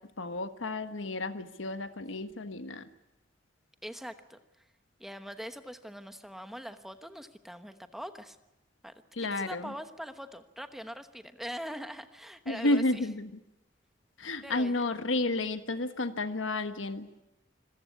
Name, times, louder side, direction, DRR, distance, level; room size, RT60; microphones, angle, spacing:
voice 1, 0.2-2.9 9.2-9.7 12.5-13.3 14.2-17.1, left 2 dB, 85° left, 10 dB, 1.4 m, -31 dB
voice 2, 3.8-4.7 5.0-8.4 8.8-13.1 14.4-14.8, equal, ahead, 9 dB, 1.1 m, -43 dB
26.0 x 15.0 x 9.7 m, 0.97 s
head